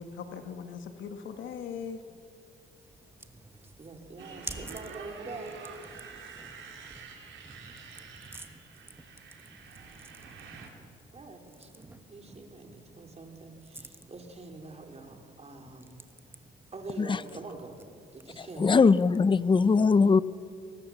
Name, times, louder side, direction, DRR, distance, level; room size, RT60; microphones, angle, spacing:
voice 1, 0.0-2.2, left 6 dB, 70° left, 1.6 m, -40 dB
sound 1, 2.7-19.4, right 2 dB, 10° right, 1.4 m, -51 dB
voice 2, 3.8-5.5 11.1-16.1 16.7-17.8 18.1-18.8, right 3 dB, 30° right, 3.8 m, -45 dB
Motorcycle, 4.2-10.7, right 5 dB, 75° right, 3.9 m, -47 dB
voice 3, 18.4-20.2, left 4 dB, 25° left, 0.6 m, -21 dB
23.5 x 20.0 x 7.2 m
cardioid pair, 90°, 20 cm